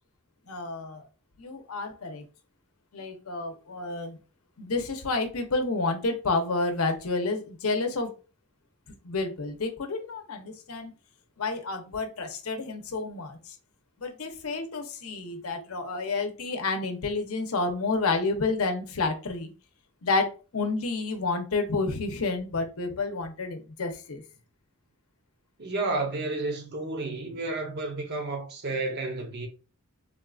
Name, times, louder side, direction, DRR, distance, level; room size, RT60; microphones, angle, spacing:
voice 1, 0.5-1.1 1.4-2.2 2.9-4.2 4.6-8.1 9.0-10.9 11.4-13.5 14.0-19.5 20.0-24.2, left 3 dB, 70° left, 0.7 m, -30 dB
voice 2, 25.6-29.5, right 2 dB, 50° right, 0.7 m, -31 dB
3.7 x 2.4 x 2.3 m
head